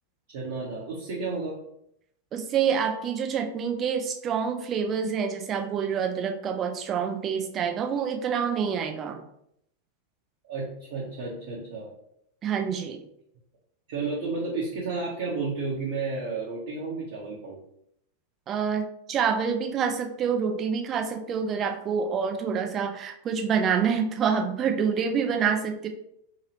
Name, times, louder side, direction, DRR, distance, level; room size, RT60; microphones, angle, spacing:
voice 1, 0.3-1.5 10.5-11.9 13.9-17.5, right 3 dB, 55° right, -6 dB, 0.8 m, -32 dB
voice 2, 2.3-9.2 12.4-13.0 18.5-18.8 19.1-25.9, right 7 dB, 30° right, 6 dB, 0.4 m, -27 dB
2.9 x 2.8 x 2.8 m, 0.75 s
figure-of-eight pair, 90°, 0 cm